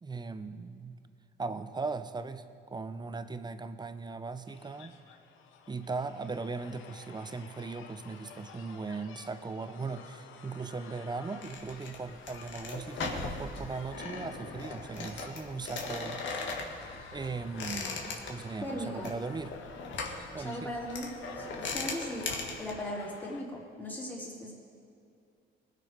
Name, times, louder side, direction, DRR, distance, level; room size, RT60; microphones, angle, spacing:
voice 1, 0.0-1.0 1.4-2.4 2.7-5.0 5.7-16.3 17.1-19.5 20.3-20.7, right 4 dB, 20° right, 11 dB, 0.7 m, -38 dB
sound 1, 4.5-23.4, left 6 dB, 85° left, 0.9 m, -52 dB
sound 2, 11.4-22.7, left 3 dB, 70° left, 1.9 m, -39 dB
sound 3, 14.3-18.1, left 1 dB, 35° left, 2.4 m, -55 dB
voice 2, 18.6-19.1 20.4-24.5, equal, 10° left, -4 dB, 3.5 m, -38 dB
20.0 x 6.7 x 5.1 m, 2.4 s
cardioid pair, 90°, 20 cm